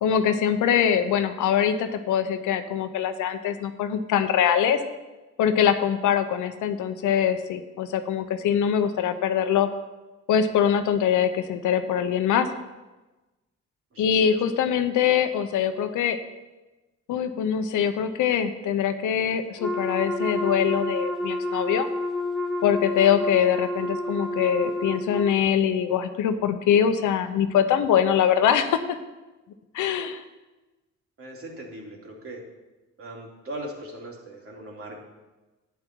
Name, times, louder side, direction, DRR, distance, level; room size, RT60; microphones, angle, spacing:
voice 1, 0.0-4.8 5.4-9.7 10.3-12.5 14.0-16.2 17.1-21.9 22.6-28.8 29.7-30.2, left 8 dB, 80° left, 9 dB, 1.0 m, -23 dB
Wind instrument woodwind instrument, 19.6-25.4, left 1 dB, ahead, 1.5 m, -29 dB
voice 2, 31.2-32.4 33.0-35.0, right 1 dB, 45° right, -1 dB, 3.4 m, -39 dB
11.5 x 9.5 x 4.7 m, 1.1 s
cardioid pair, 90°, 30 cm